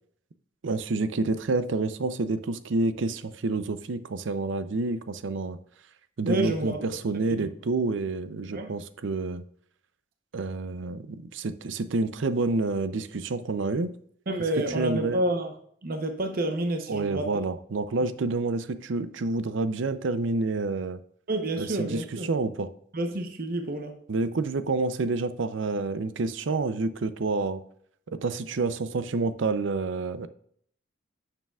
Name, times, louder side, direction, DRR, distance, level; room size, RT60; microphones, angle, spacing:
voice 1, 0.6-5.6 6.2-9.4 10.3-13.9 14.7-15.2 16.9-21.0 21.6-22.7 24.1-27.6 28.1-30.3, right 3 dB, 70° right, 0.5 m, -28 dB
voice 2, 6.2-6.8 7.1-7.5 8.5-8.7 14.3-15.6 15.8-17.3 21.3-22.3 22.9-24.0, right 1 dB, 50° right, 0.8 m, -29 dB
9.2 x 6.7 x 2.4 m
head